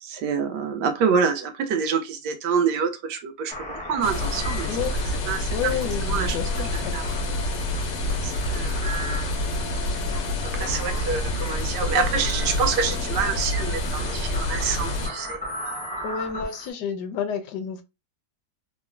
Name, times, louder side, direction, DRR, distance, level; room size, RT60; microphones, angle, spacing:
voice 1, 0.0-4.7 5.3-5.5 6.1-6.4 6.9-7.1 8.2-9.0 10.5-16.2, right 6 dB, 75° right, 1.2 m, -27 dB
sound 1, 3.5-16.7, equal, 10° left, 0.4 m, -38 dB
sound 2, 4.0-15.1, left 1 dB, 90° left, 1.4 m, -27 dB
voice 2, 5.5-7.0 16.0-17.8, left 7 dB, 75° left, 1.1 m, -30 dB
3.7 x 2.0 x 2.4 m
omnidirectional pair, 1.9 m